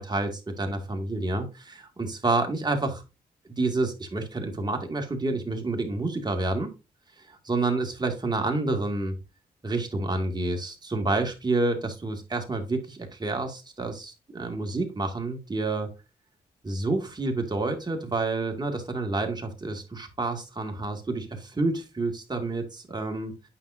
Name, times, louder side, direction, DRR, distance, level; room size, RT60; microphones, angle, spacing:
voice 1, 0.0-3.0 3.6-6.7 7.4-9.2 9.6-15.9 16.6-23.3, right 2 dB, 25° right, 3 dB, 2.2 m, -29 dB
8.9 x 5.8 x 2.7 m, 0.26 s
cardioid pair, 75°, 17 cm